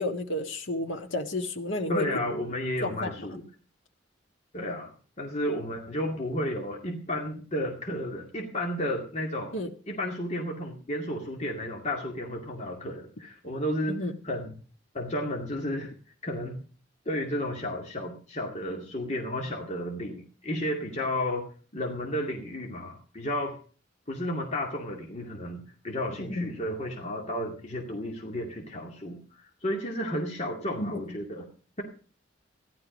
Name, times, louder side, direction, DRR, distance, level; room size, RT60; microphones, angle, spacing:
voice 1, 0.0-2.1 2.8-3.1 9.5-9.7 13.9-14.1 26.3-26.5 30.8-31.0, left 2 dB, 90° left, 5 dB, 1.7 m, -31 dB
voice 2, 1.9-3.4 4.5-9.6 9.9-14.0 14.2-14.6 14.9-15.9 16.2-16.6 17.1-21.5 21.7-23.5 24.1-29.2 29.6-31.5, left 1 dB, 40° left, 0 dB, 2.3 m, -32 dB
15.0 x 12.0 x 5.2 m, 0.40 s
head